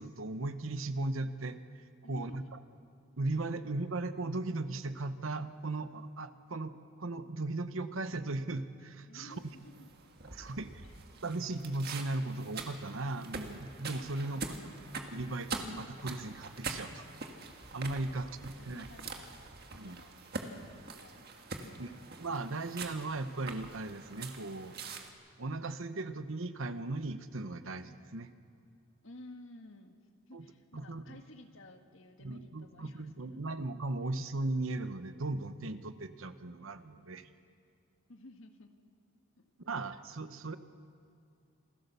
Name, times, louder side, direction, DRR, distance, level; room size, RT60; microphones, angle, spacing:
voice 1, 0.0-2.6 3.2-6.7 7.0-9.4 10.3-10.8 11.2-14.5 15.1-17.1 17.7-18.9 19.8-20.0 21.8-24.8 25.4-28.3 30.3-30.4 30.7-31.2 32.2-37.3 39.6-40.6, right 2 dB, 65° right, 11 dB, 1.0 m, -37 dB
voice 2, 2.0-2.5 3.4-3.5 9.1-9.9 10.8-11.0 18.0-19.3 19.7-20.6 21.0-21.3 21.6-21.8 29.0-30.0 30.3-33.4 36.9-37.1 38.1-38.8 39.4-39.5, left 2 dB, 65° left, 5 dB, 1.6 m, -54 dB
sound 1, 9.3-25.1, right 4 dB, 45° right, 1.7 m, -44 dB
28.0 x 16.0 x 6.9 m, 2.4 s
head